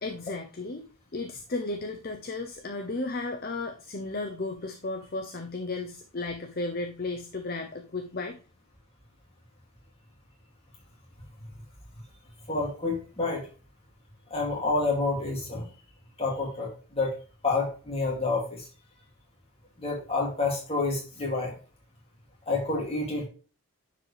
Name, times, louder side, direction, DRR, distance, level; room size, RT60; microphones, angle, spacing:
voice 1, 0.0-0.9 1.1-8.4, left 3 dB, 45° left, 4 dB, 0.7 m, -34 dB
voice 2, 12.5-13.5 14.3-15.7 16.2-17.1 17.4-18.6 19.8-21.5 22.5-23.3, left 3 dB, 25° left, -2 dB, 2.6 m, -28 dB
10.0 x 4.8 x 3.4 m, 0.37 s
head